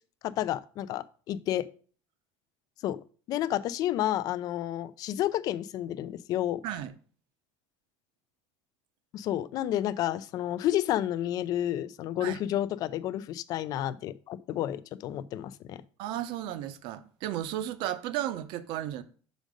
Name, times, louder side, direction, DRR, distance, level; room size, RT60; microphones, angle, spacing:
voice 1, 0.2-1.6 2.8-3.0 3.3-6.6 9.1-15.8, left 12 dB, 45° left, 0.4 m, -30 dB
voice 2, 6.6-6.9 12.2-12.4 16.0-19.0, right 12 dB, 65° right, 0.7 m, -34 dB
6.3 x 5.1 x 5.1 m
cardioid pair, 165°, 9 cm